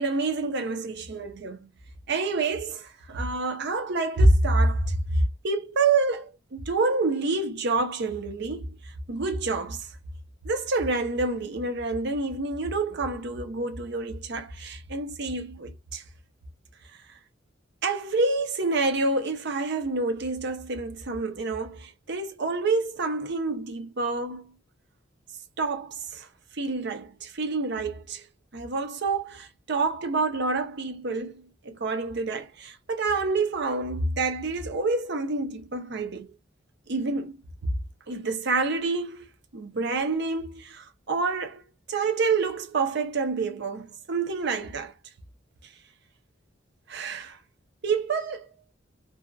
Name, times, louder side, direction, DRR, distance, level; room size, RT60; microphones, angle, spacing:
voice 1, 0.0-1.7 2.1-8.7 9.1-9.9 10.4-16.0 17.8-24.5 25.6-26.3 26.5-28.2 28.5-36.3 36.9-37.4 38.1-39.3 39.5-41.6 41.9-44.9 46.9-47.4 47.8-48.5, right 3 dB, 60° right, 0.7 m, -27 dB
2.7 x 2.5 x 2.3 m
head